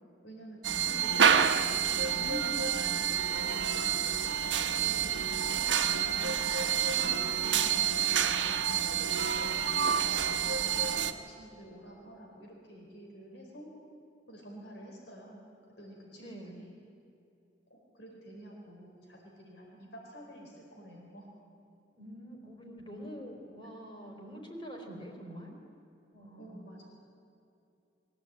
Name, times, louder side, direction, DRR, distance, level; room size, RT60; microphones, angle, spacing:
voice 1, 0.2-3.8 4.6-9.2 9.6-13.7 14.3-15.4 15.8-16.7 17.7-21.3 26.3-26.9, equal, 70° left, -1 dB, 4.4 m, -49 dB
sound 1, 0.6-11.1, right 7 dB, 85° right, 1.1 m, -28 dB
voice 2, 4.5-5.5 16.2-16.6 21.9-25.5 26.1-26.9, equal, 30° left, 1 dB, 3.8 m, -47 dB
22.5 x 15.5 x 8.9 m, 2.7 s
head